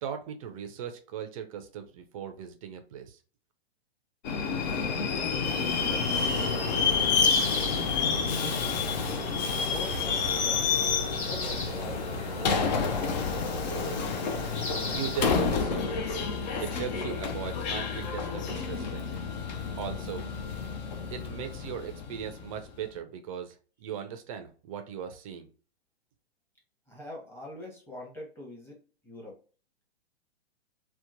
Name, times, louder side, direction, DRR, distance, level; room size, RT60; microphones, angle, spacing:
voice 1, 0.0-3.2 14.9-15.8 16.6-19.0 19.8-20.3 21.1-25.5, right 8 dB, 35° right, 7 dB, 0.4 m, -38 dB
Subway metro underground, 4.2-22.7, left 5 dB, 45° left, 0.5 m, -29 dB
voice 2, 5.1-6.7 7.5-8.6 9.0-10.7 11.1-12.5 26.9-29.4, left 1 dB, 5° left, -4 dB, 1.0 m, -45 dB
sound 1, 5.4-15.6, left 1 dB, 85° left, 1.0 m, -36 dB
2.8 x 2.1 x 2.5 m, 0.37 s
hypercardioid pair, 125°, 32 cm